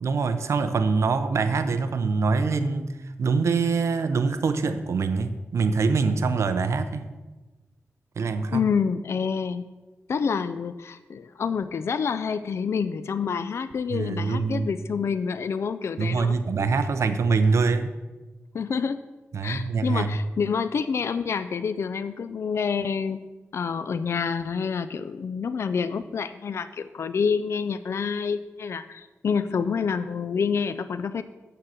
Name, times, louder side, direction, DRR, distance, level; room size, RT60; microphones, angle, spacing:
voice 1, 0.0-7.1 8.2-8.6 13.9-14.7 16.0-17.9 19.3-20.2, right 4 dB, 70° right, 10 dB, 0.6 m, -24 dB
voice 2, 8.5-9.7 10.1-16.3 18.5-19.0 19.4-23.2 23.5-31.2, left 6 dB, 60° left, 12 dB, 0.4 m, -27 dB
7.3 x 6.7 x 6.4 m, 1.2 s
wide cardioid pair, 125°, 5 cm